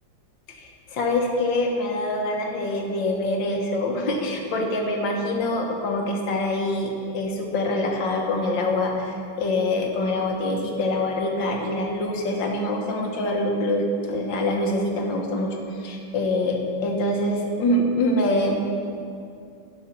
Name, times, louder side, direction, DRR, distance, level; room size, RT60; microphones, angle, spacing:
voice 1, 0.5-18.6, left 1 dB, 80° left, 1 dB, 1.9 m, -25 dB
11.5 x 5.6 x 5.8 m, 2.4 s
omnidirectional pair, 2.0 m